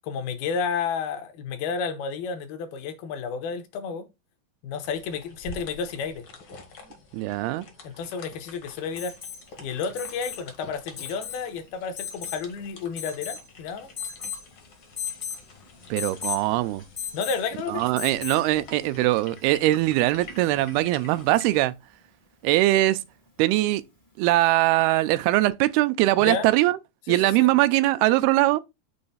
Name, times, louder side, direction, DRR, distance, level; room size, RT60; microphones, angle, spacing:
voice 1, 0.0-4.1 4.6-6.2 7.8-9.1 9.6-13.9 17.1-17.8 26.2-26.5 27.1-27.5, left 5 dB, 80° left, 2.8 m, -31 dB
sound 1, 4.8-21.6, left 4 dB, 60° left, 1.1 m, -47 dB
voice 2, 7.1-7.7 15.9-16.8 17.7-21.7 22.4-23.0 23.4-23.8 24.2-26.8 27.1-28.6, right 17 dB, 85° right, 2.5 m, -21 dB
Alarm, 9.0-9.4 10.0-10.4 11.0-11.4 12.0-12.4 13.0-13.5 14.0-14.4 15.0-15.4 16.0-16.4 17.0-17.5 18.0-18.5 20.2-20.3, left 8 dB, 25° left, 0.7 m, -35 dB
6.9 x 3.2 x 5.5 m
omnidirectional pair, 4.4 m